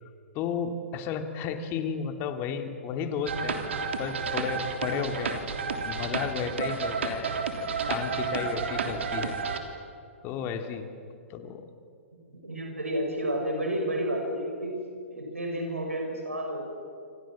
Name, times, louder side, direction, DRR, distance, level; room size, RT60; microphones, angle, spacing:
voice 1, 0.3-3.6 4.0-5.4 5.8-7.3 7.9-9.3 10.2-10.9 11.3-11.7, left 7 dB, 30° left, 6 dB, 2.7 m, -33 dB
sound 1, 3.3-9.6, right 5 dB, 65° right, 3.4 m, -31 dB
voice 2, 12.3-14.7 15.1-16.7, right 1 dB, 85° right, 1 dB, 6.2 m, -31 dB
27.5 x 27.5 x 7.5 m, 2.4 s
figure-of-eight pair, 115°, 7 cm